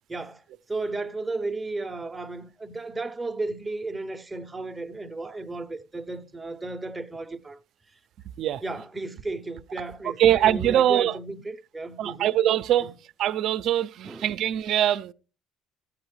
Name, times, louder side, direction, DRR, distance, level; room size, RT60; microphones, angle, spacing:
voice 1, 0.1-0.4 0.7-7.6 8.6-12.3 12.8-12.9 14.0-14.3, right 2 dB, 15° right, 0.6 m, -34 dB
voice 2, 10.2-11.2 12.0-12.9 13.2-15.1, right 11 dB, 60° right, 0.5 m, -22 dB
13.5 x 8.7 x 3.1 m
cardioid pair, 125°, 0 cm